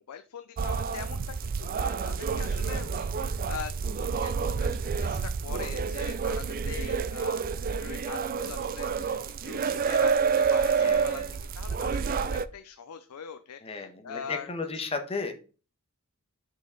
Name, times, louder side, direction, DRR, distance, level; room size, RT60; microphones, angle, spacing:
voice 1, 0.0-11.2 11.5-14.8, left 7 dB, 90° left, 9 dB, 0.5 m, -43 dB
sound 1, 0.6-12.5, right 5 dB, 40° right, 0.4 m, -29 dB
voice 2, 10.8-11.3 13.6-15.3, left 4 dB, 25° left, 6 dB, 1.1 m, -34 dB
6.1 x 5.3 x 3.8 m, 0.35 s
head